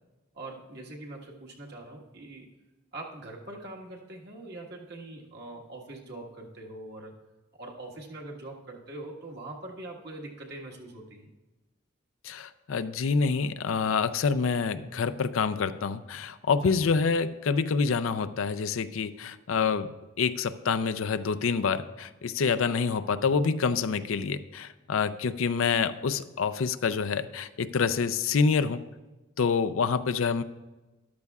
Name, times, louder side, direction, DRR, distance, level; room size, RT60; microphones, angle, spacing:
voice 1, 0.3-2.6 2.9-7.1 7.6-11.3, right 2 dB, 55° right, -1 dB, 1.6 m, -43 dB
voice 2, 12.2-19.9 20.2-28.8 29.4-30.4, left 5 dB, 85° left, 13 dB, 0.5 m, -27 dB
13.5 x 12.0 x 2.4 m, 1.1 s
head